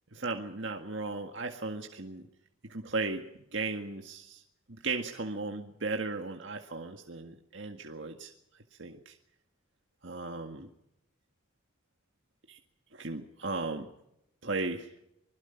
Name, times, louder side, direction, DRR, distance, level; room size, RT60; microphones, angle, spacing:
voice 1, 0.1-2.2 2.7-3.2 3.5-4.4 4.7-8.3 8.8-9.1 10.0-10.7 12.5-12.6 13.0-13.9 14.4-14.9, right 3 dB, 60° right, 3 dB, 1.9 m, -36 dB
25.5 x 21.5 x 5.8 m, 0.80 s
head